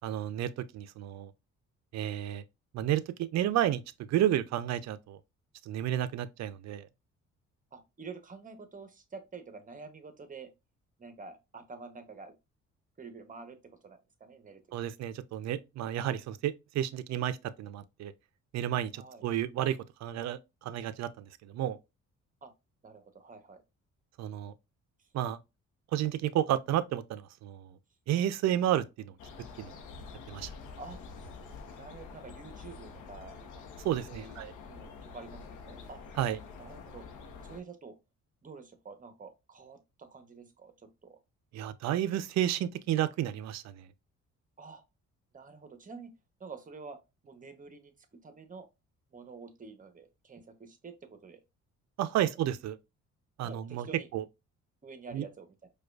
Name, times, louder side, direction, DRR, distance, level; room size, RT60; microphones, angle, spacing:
voice 1, 0.0-1.3 1.9-2.4 2.7-3.8 4.1-5.2 5.6-6.9 14.7-18.1 18.5-21.8 24.2-24.5 25.1-25.4 25.9-27.8 28.1-29.1 29.6-29.8 30.3-30.5 33.8-34.5 36.2-36.4 41.5-43.9 52.0-52.8 53.4-53.9 54.1-54.2 55.1-55.2, right 11 dB, 65° right, 0.4 m, -31 dB
voice 2, 7.7-10.5 11.0-12.3 13.0-14.6 19.0-19.2 22.4-22.5 22.8-23.6 30.8-31.0 31.8-33.6 34.1-34.4 34.6-36.0 36.6-37.1 37.4-38.0 38.4-41.2 44.6-44.8 45.3-46.1 46.4-47.0 47.2-48.7 49.1-51.4 52.2-52.3 53.4-54.1 54.8-55.7, right 4 dB, 25° right, 0.8 m, -48 dB
sound 1, 29.2-37.6, left 5 dB, 75° left, 0.7 m, -47 dB
4.7 x 2.3 x 2.2 m
cardioid pair, 90°, 30 cm